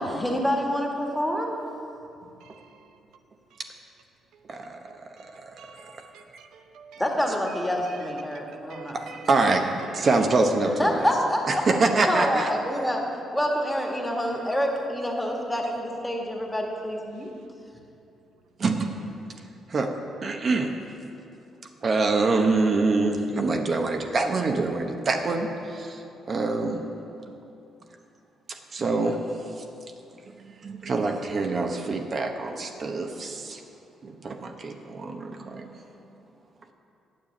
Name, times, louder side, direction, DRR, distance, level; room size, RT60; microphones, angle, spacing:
voice 1, 0.0-1.6 7.0-9.0 10.7-11.4 12.0-13.0 13.3-17.3, equal, 5° left, 0 dB, 1.8 m, -27 dB
voice 2, 2.4-2.9 3.5-3.6 4.9-7.0 7.6-8.4 8.7-9.3 9.8-10.0, right 7 dB, 85° right, 6 dB, 0.6 m, -48 dB
voice 3, 4.5-5.5 8.9-11.1 11.5-12.5 18.6-18.9 19.7-19.9 20.2-20.7 21.8-26.8 28.5-29.2 29.6-29.7 30.4-33.6 34.0-35.8, right 3 dB, 45° right, 4 dB, 0.9 m, -25 dB
9.3 x 6.9 x 8.5 m, 2.7 s
cardioid pair, 90°, 0 cm